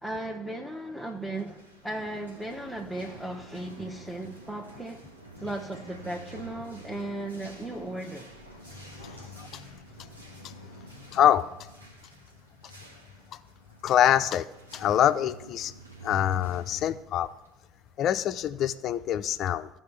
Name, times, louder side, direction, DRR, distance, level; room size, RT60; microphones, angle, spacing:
voice 1, 0.0-5.1 5.4-8.3, right 1 dB, 5° right, 1.0 m, -36 dB
sound 1, 1.2-18.6, right 2 dB, 85° right, 1.4 m, -49 dB
voice 2, 9.0-9.7 10.4-10.5 11.1-11.5 13.8-14.5 14.7-15.7 16.0-17.3 18.0-19.7, left 11 dB, 45° left, 0.5 m, -25 dB
15.5 x 5.4 x 3.3 m
figure-of-eight pair, 60°, 0 cm